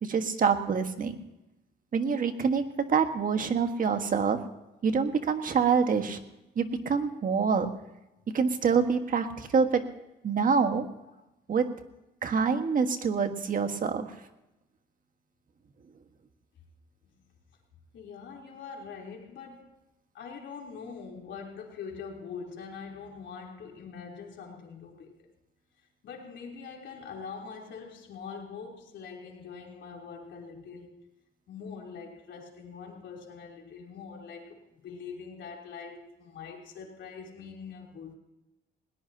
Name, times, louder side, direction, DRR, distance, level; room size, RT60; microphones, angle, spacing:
voice 1, 0.0-1.2 1.9-2.6 2.9-4.4 4.8-6.2 6.5-7.7 8.3-9.8 10.2-10.8 11.5-11.6 12.2-14.1, right 5 dB, 45° right, 7 dB, 1.5 m, -26 dB
voice 2, 17.9-19.7 20.1-25.3 26.0-30.9 31.5-38.2, left 5 dB, 75° left, 0 dB, 3.4 m, -43 dB
20.5 x 18.0 x 2.9 m, 0.95 s
cardioid pair, 110°, 19 cm